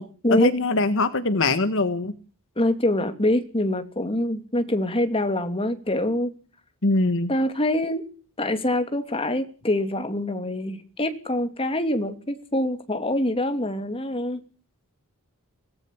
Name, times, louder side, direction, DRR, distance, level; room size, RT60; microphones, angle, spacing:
voice 1, 0.3-2.1 6.8-7.3, left 2 dB, 60° left, 11 dB, 1.6 m, -22 dB
voice 2, 2.6-6.3 7.3-8.0 8.4-14.4, left 1 dB, 25° left, 8 dB, 2.9 m, -25 dB
25.0 x 18.0 x 7.3 m, 0.41 s
head